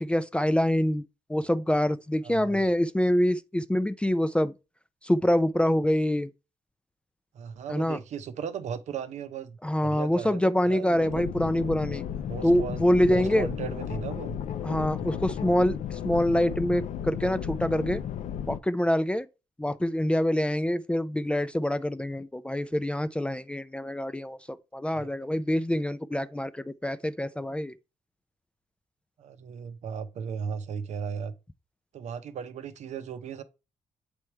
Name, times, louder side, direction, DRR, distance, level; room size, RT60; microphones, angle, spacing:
voice 1, 0.0-1.0 1.3-4.5 5.0-6.3 7.7-8.0 9.6-12.0 12.4-13.5 14.6-18.0 18.5-19.3 19.6-27.7, left 1 dB, 10° left, 0.3 m, -25 dB
voice 2, 2.2-2.6 7.3-11.2 12.3-14.4 14.9-15.2 24.9-25.1 29.2-31.3 31.9-33.4, right 7 dB, 70° right, 0.7 m, -37 dB
sound 1, 10.9-18.6, left 9 dB, 75° left, 0.5 m, -34 dB
7.6 x 3.4 x 4.4 m
cardioid pair, 95°, 12 cm